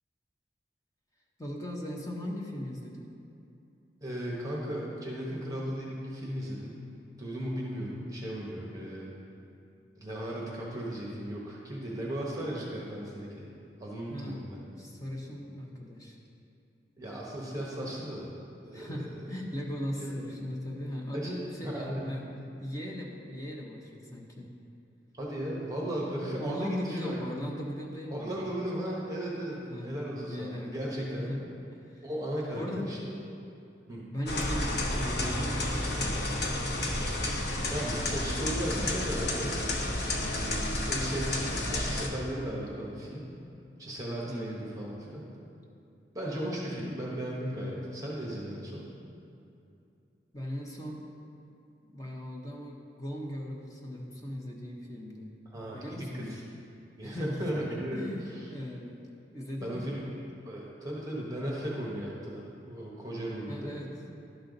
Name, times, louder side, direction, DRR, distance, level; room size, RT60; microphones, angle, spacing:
voice 1, 1.4-3.1 14.1-16.2 18.7-22.3 22.6-24.5 26.4-28.5 29.7-31.4 31.7-32.1 32.5-32.9 34.1-36.3 38.3-38.5 38.8-39.1 44.3-44.5 50.3-51.0 51.8-55.3 55.7-56.4 57.0-57.5 57.9-59.0 59.3-59.9 63.5-63.9, equal, 20° left, -2 dB, 0.8 m, -38 dB
voice 2, 4.0-6.7 7.2-9.1 10.0-13.5 13.8-14.6 17.0-18.3 18.6-19.0 19.9-20.1 21.1-21.4 21.6-22.0 25.1-27.3 28.2-31.4 32.0-33.2 33.9-34.1 37.7-39.7 40.1-43.3 43.8-45.3 46.1-48.9 55.5-56.4 57.0-58.1 59.6-60.0 60.4-63.8, right 1 dB, 20° right, -4 dB, 1.1 m, -36 dB
sound 1, 34.3-42.1, left 1 dB, 60° left, 0.9 m, -31 dB
11.5 x 5.6 x 3.9 m, 2.7 s
head